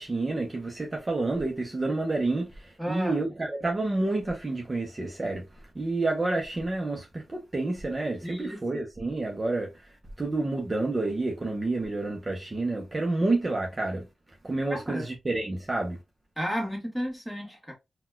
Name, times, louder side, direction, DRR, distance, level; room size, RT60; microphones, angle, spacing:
voice 1, 0.0-14.1 14.4-16.0, right 2 dB, 30° right, 0.7 m, -29 dB
voice 2, 2.8-3.3 8.2-8.8 14.7-15.1 16.4-17.7, equal, ahead, 1.4 m, -33 dB
4.0 x 2.2 x 2.3 m
cardioid pair, 75°, 0 cm